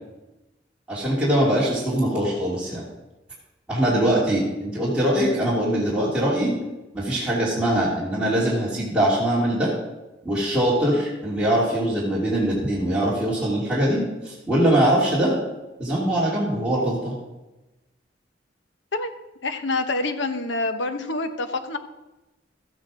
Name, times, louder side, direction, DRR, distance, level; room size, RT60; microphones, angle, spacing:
voice 1, 0.9-2.8 3.7-6.5 6.9-9.7 10.2-14.0 14.2-15.3 15.8-17.1, right 1 dB, 5° right, -8 dB, 2.9 m, -22 dB
voice 2, 19.4-21.8, left 2 dB, 90° left, 8 dB, 1.1 m, -26 dB
13.5 x 9.1 x 5.0 m, 1.0 s
head